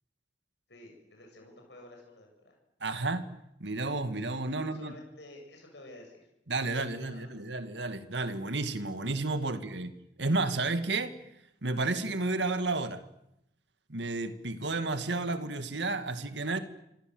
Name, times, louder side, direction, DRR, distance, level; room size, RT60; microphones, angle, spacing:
voice 1, 0.7-2.6 4.5-6.2 6.9-7.3, left 1 dB, 75° left, 7.2 m, -51 dB
voice 2, 2.8-3.3 3.6-4.9 6.5-9.9 10.2-11.2 11.6-13.0 13.9-16.6, right 3 dB, 80° right, 2.1 m, -31 dB
27.5 x 26.0 x 7.9 m
head